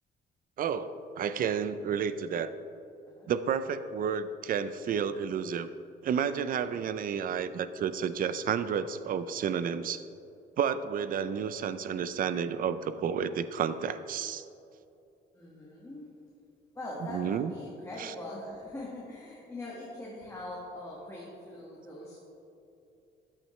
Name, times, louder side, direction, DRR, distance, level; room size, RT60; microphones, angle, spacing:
voice 1, 0.6-2.6 3.3-5.7 6.0-10.0 10.6-14.4 17.1-17.5 18.0-18.1, right 7 dB, 50° right, 13 dB, 0.4 m, -31 dB
voice 2, 15.3-16.1 16.7-22.2, left 1 dB, 15° left, -6 dB, 1.6 m, -42 dB
12.5 x 8.9 x 3.2 m, 2.7 s
cardioid pair, 140°, 19 cm